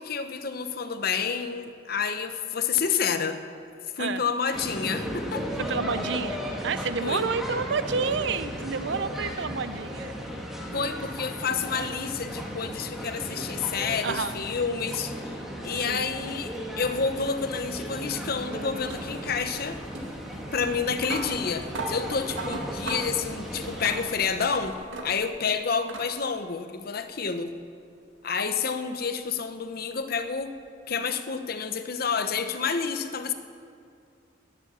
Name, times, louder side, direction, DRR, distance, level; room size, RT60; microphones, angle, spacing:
voice 1, 0.0-3.4 3.9-5.5 7.0-7.3 10.7-15.3 15.6-19.8 20.5-24.8 25.0-27.5 28.2-30.5 30.9-33.3, left 6 dB, 55° left, 9 dB, 0.8 m, -29 dB
sound 1, 4.5-24.0, equal, ahead, 1.6 m, -36 dB
voice 2, 5.6-10.2 14.0-14.3 15.8-16.1, right 5 dB, 65° right, 13 dB, 0.6 m, -29 dB
sound 2, 16.5-25.4 25.9-26.1 27.4-27.5 30.4-30.5, right 2 dB, 85° right, 1.7 m, -39 dB
19.5 x 7.4 x 7.0 m, 2.3 s
head